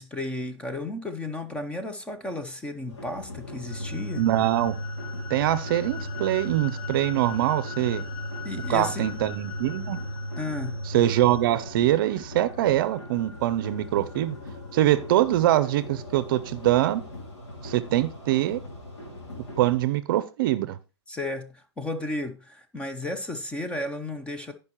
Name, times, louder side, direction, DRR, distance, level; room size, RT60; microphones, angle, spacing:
voice 1, 0.0-4.3 8.4-9.1 10.4-10.8 21.1-24.5, left 2 dB, 10° left, 0.6 m, -33 dB
sound 1, 2.9-19.8, left 2 dB, 80° left, 3.1 m, -41 dB
sound 2, 3.7-11.4, left 1 dB, 50° left, 1.3 m, -35 dB
voice 2, 4.2-4.8 5.3-8.0 8.7-10.0 10.9-14.4 14.7-17.0 17.6-18.6 19.6-20.8, right 14 dB, 50° right, 0.6 m, -23 dB
15.5 x 5.3 x 3.0 m
hypercardioid pair, 150°, 14 cm